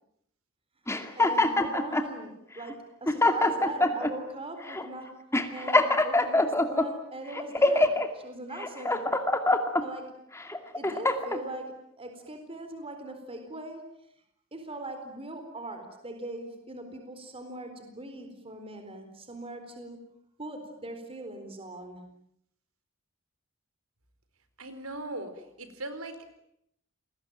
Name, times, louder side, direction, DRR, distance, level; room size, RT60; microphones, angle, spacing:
sound 1, 0.9-2.1 2.7-2.8 3.1-4.1 4.7-4.9 5.3-6.9 7.3-8.1 8.6-9.8 10.4-11.4, left 2 dB, 15° left, 2.4 m, -24 dB
voice 1, 0.9-5.1 5.5-9.1 9.8-10.1 10.7-13.9 14.5-20.0 20.4-22.1, right 2 dB, 30° right, 6 dB, 4.2 m, -41 dB
voice 2, 24.6-26.2, right 2 dB, 85° right, 10 dB, 4.4 m, -39 dB
28.5 x 21.5 x 9.1 m, 0.75 s
head